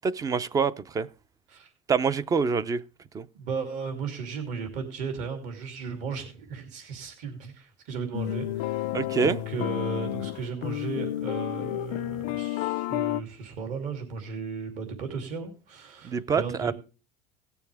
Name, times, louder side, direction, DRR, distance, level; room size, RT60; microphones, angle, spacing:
voice 1, 0.0-1.1 1.9-2.8 3.1-3.3 8.9-9.4 16.0-16.7, right 5 dB, 25° right, 0.5 m, -26 dB
voice 2, 3.3-16.7, right 5 dB, 55° right, 2.9 m, -35 dB
sound 1, 8.1-13.2, left 15 dB, 60° left, 0.5 m, -31 dB
18.5 x 7.0 x 3.4 m
cardioid pair, 140°, 15 cm